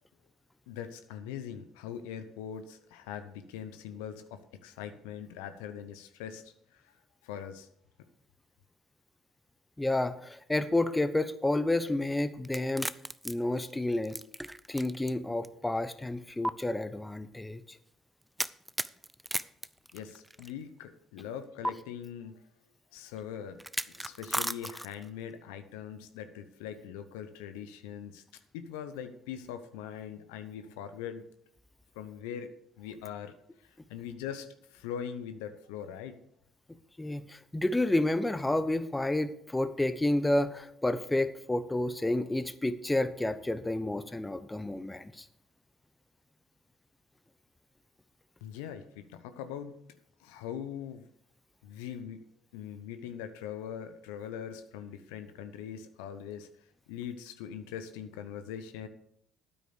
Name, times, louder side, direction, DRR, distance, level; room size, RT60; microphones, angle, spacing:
voice 1, 0.7-6.9 7.2-7.7 19.9-22.4 22.9-23.6 23.9-28.2 28.5-31.2 31.9-32.5 32.8-33.3 33.9-36.2 48.4-49.8 50.2-51.1 51.6-52.3 52.5-56.5 56.9-58.9, left 8 dB, 80° left, 9 dB, 0.9 m, -41 dB
voice 2, 9.8-12.9 13.2-14.2 14.7-17.8 37.0-45.3, left 1 dB, 15° left, 12 dB, 1.0 m, -30 dB
sound 1, 12.5-15.1 15.4-15.5 16.4-16.5 18.4-20.5 21.6-21.7 23.6-25.1, right 1 dB, 10° right, 0.5 m, -35 dB
9.4 x 8.3 x 6.7 m, 0.70 s
hypercardioid pair, 60°, 0 cm